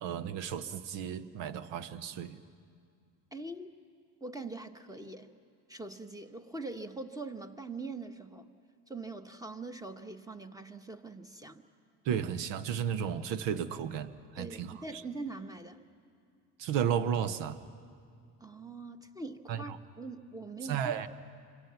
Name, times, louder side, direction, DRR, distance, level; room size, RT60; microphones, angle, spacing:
voice 1, 0.0-2.4 12.0-15.0 16.6-17.6 19.5-19.8 20.7-21.1, right 8 dB, 65° right, 13 dB, 1.2 m, -33 dB
voice 2, 3.3-3.7 4.2-5.3 5.7-8.5 8.9-11.6 14.3-15.8 18.4-21.1, right 3 dB, 5° right, 7 dB, 1.5 m, -43 dB
29.0 x 26.0 x 5.9 m, 2.3 s
hypercardioid pair, 65°, 47 cm